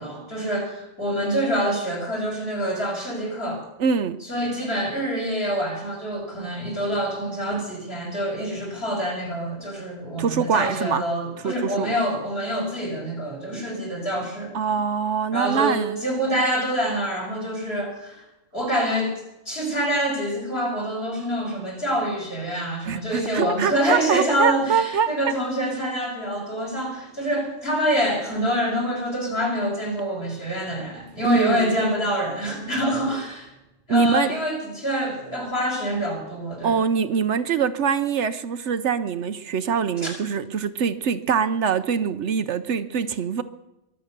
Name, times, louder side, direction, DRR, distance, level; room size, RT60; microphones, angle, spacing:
voice 1, 0.0-3.6 4.2-14.5 15.3-18.2 18.5-19.2 19.5-33.5 33.9-36.7, equal, 50° left, 5.8 m, -26 dB
voice 2, 3.8-4.2 10.2-11.0 11.4-12.0 14.5-16.0 22.8-25.2 31.2-31.7 33.9-34.4 36.6-43.4, right 6 dB, 65° right, 1.0 m, -24 dB
23.0 x 8.0 x 6.6 m
omnidirectional pair, 1.3 m